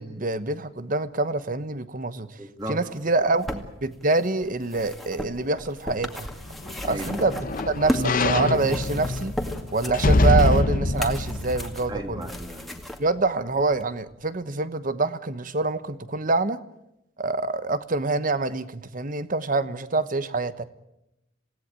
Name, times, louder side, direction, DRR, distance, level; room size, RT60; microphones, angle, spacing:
voice 1, 0.0-2.4 2.7-6.3 6.8-9.3 9.7-12.2 13.0-16.6 17.2-20.6, right 3 dB, 45° right, 13 dB, 1.1 m, -26 dB
voice 2, 2.4-2.8 6.8-7.3 11.9-12.8, right 1 dB, 20° right, 3 dB, 2.6 m, -35 dB
sound 1, 3.0-8.2 8.5-13.0 13.8-13.9, equal, ahead, 2.2 m, -35 dB
sound 2, 6.3-12.7 13.1-13.2, left 2 dB, 45° left, 0.8 m, -25 dB
27.5 x 17.5 x 8.9 m, 0.86 s
head